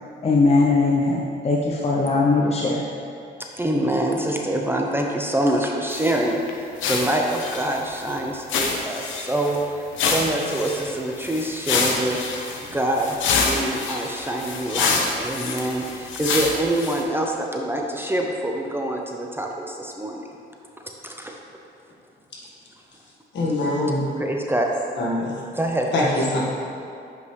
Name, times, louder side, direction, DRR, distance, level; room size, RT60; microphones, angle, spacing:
voice 1, 0.2-2.8, left 3 dB, 30° left, -2 dB, 0.7 m, -20 dB
voice 2, 3.6-9.6 10.0-20.2 21.0-21.4 24.2-24.7 25.5-26.1, right 1 dB, 10° right, 0 dB, 0.6 m, -25 dB
sound 1, 5.9-6.2 6.5-6.6 6.8-8.1 8.5-9.6 9.9-17.0, left 4 dB, 80° left, 0.8 m, -26 dB
voice 3, 23.3-24.1 25.0-25.3 25.9-26.5, left 1 dB, 65° left, -4 dB, 1.6 m, -23 dB
7.9 x 5.3 x 3.2 m, 2.5 s
cardioid pair, 90°, 20 cm